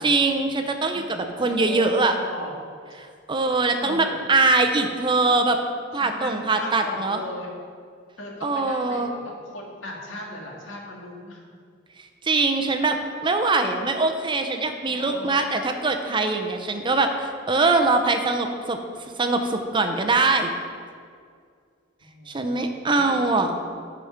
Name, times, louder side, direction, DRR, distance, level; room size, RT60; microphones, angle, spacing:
voice 1, 0.0-2.1 3.3-5.6 5.9-7.2 8.4-9.1 12.2-18.8 19.2-20.5 22.3-23.5, right 3 dB, 25° right, 5 dB, 0.6 m, -22 dB
voice 2, 1.4-2.5 3.8-4.4 5.9-7.5 8.2-11.4 14.8-15.6 22.0-22.5 22.9-23.6, left 1 dB, 80° left, -1 dB, 1.9 m, -38 dB
10.5 x 5.1 x 5.7 m, 2.1 s
head